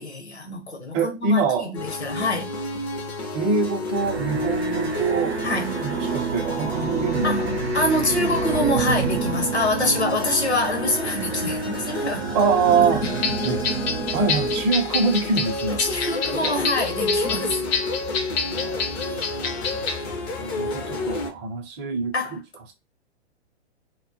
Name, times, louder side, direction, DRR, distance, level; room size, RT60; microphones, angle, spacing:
voice 1, 0.0-1.7 2.0-2.5 5.4-5.8 7.2-7.4 7.7-12.3 13.0-13.1 15.8-17.6 22.1-22.4, left 2 dB, 85° left, 0.9 m, -25 dB
voice 2, 0.9-1.7 3.3-5.4 5.8-7.6 8.0-8.3 12.3-13.0 13.4-13.7 14.1-15.8 16.3-16.6 18.5-19.2 20.4-22.4, right 4 dB, 25° right, 0.5 m, -24 dB
sound 1, 1.7-21.3, left 2 dB, 20° left, 0.3 m, -30 dB
sound 2, 3.9-14.7, right 6 dB, 80° right, 0.6 m, -29 dB
sound 3, 13.0-20.0, left 5 dB, 70° left, 0.6 m, -28 dB
2.1 x 2.1 x 2.7 m
figure-of-eight pair, 110°, 32 cm